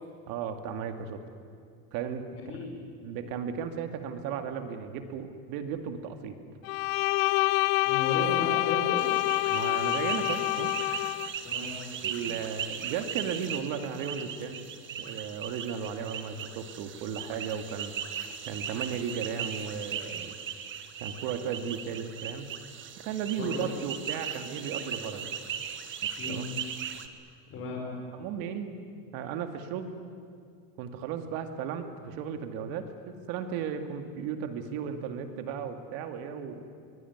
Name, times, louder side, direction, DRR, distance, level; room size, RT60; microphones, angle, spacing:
voice 1, 0.3-1.2 1.9-2.3 3.0-6.4 9.5-10.7 12.0-14.6 15.0-17.9 18.4-20.3 21.0-22.5 23.0-25.3 26.3-26.4 28.1-28.8 29.1-29.9 30.8-36.7, right 7 dB, 60° right, 7 dB, 2.4 m, -35 dB
Bowed string instrument, 6.6-11.3, left 21 dB, 75° left, 0.7 m, -27 dB
voice 2, 7.9-9.0 11.4-11.7 23.4-23.7 26.2-26.4 27.5-27.8, left 3 dB, 35° left, -2 dB, 5.4 m, -34 dB
sound 1, 9.0-27.1, right 8 dB, 30° right, 1.4 m, -38 dB
23.5 x 22.0 x 9.6 m, 2.2 s
cardioid pair, 155°, 40 cm